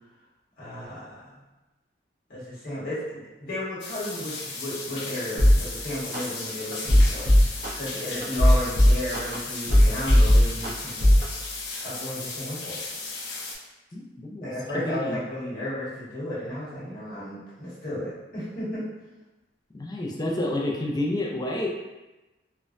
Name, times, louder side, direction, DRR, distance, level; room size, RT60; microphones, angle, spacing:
voice 1, 0.6-1.3 2.3-7.3 7.7-11.1 11.8-12.8 14.4-18.9, left 1 dB, 50° left, -8 dB, 1.1 m, -33 dB
sound 1, 3.8-13.5, left 3 dB, 75° left, 0.6 m, -36 dB
sound 2, 5.4-5.6 6.1-6.2 6.7-7.7 8.2-9.4 9.7-10.7 11.0-11.2, equal, 55° right, 0.7 m, -16 dB
voice 2, 13.9-14.5 14.7-15.2 19.7-21.7, left 1 dB, 20° left, -2 dB, 0.4 m, -29 dB
3.1 x 2.1 x 2.5 m, 1.1 s
head